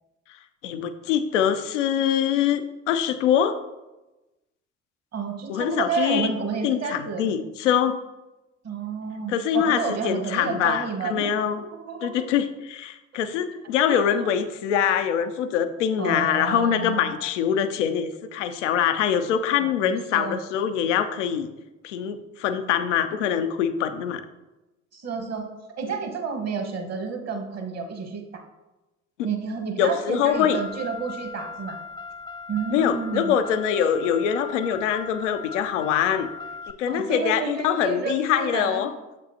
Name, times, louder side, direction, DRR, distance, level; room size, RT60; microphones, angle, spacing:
voice 1, 0.6-3.6 5.5-6.3 6.6-8.0 9.3-11.6 12.0-21.5 21.8-24.3 29.8-30.6 32.7-36.3 36.7-38.9, left 9 dB, 80° left, 10 dB, 0.5 m, -24 dB
voice 2, 5.1-7.3 8.6-11.3 11.6-12.2 13.9-14.3 16.0-17.2 19.6-20.4 24.9-25.5 25.8-28.2 29.2-31.8 32.5-33.3 36.9-38.8, right 5 dB, 45° right, 4 dB, 1.3 m, -30 dB
Car, 30.3-36.7, left 4 dB, 15° left, 0.4 m, -38 dB
7.3 x 5.2 x 2.7 m, 1.0 s
figure-of-eight pair, 50°, 36 cm